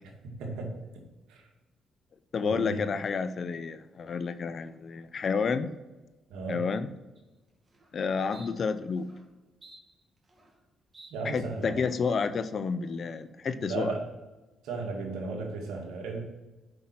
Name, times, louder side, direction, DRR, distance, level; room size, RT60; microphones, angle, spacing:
voice 1, 0.4-0.7 1.3-1.5 2.4-2.8 6.3-6.7 11.1-11.9 13.6-14.1 14.6-16.2, right 3 dB, 85° right, 0 dB, 2.2 m, -35 dB
voice 2, 2.3-5.7 6.5-6.9 7.9-9.1 11.2-13.9, left 5 dB, 55° left, 12 dB, 0.6 m, -30 dB
sound 1, 7.2-7.3 7.7-7.9 8.3-8.5 9.0-9.2 9.6-10.6 10.9-11.1 11.6-11.9, right 2 dB, 30° right, 2.4 m, -54 dB
7.9 x 5.6 x 6.0 m, 1.1 s
supercardioid pair, 65°, 0 cm